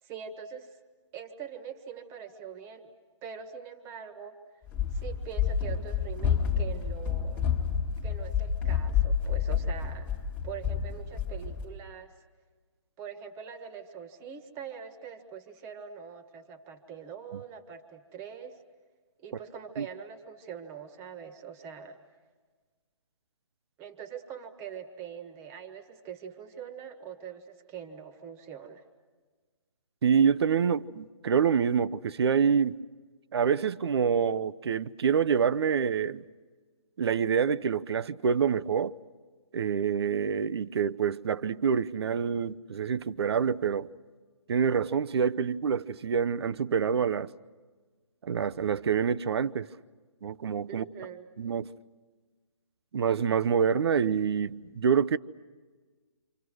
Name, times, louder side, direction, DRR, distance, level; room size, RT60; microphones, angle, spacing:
voice 1, 0.0-0.8 1.1-2.9 3.2-4.3 4.9-7.4 8.0-10.1 10.4-12.1 13.0-18.6 19.2-22.0 23.8-28.8 50.7-51.3, right 7 dB, 15° right, 1.5 m, -43 dB
Run, 4.7-11.7, left 7 dB, 10° left, 1.6 m, -29 dB
voice 2, 30.0-32.8 33.3-36.2 37.0-38.9 39.5-43.9 44.5-47.3 48.2-49.7 50.2-50.8 51.4-51.7 52.9-55.2, right 7 dB, 55° right, 0.8 m, -26 dB
29.0 x 27.0 x 6.3 m
hypercardioid pair, 155°, 16 cm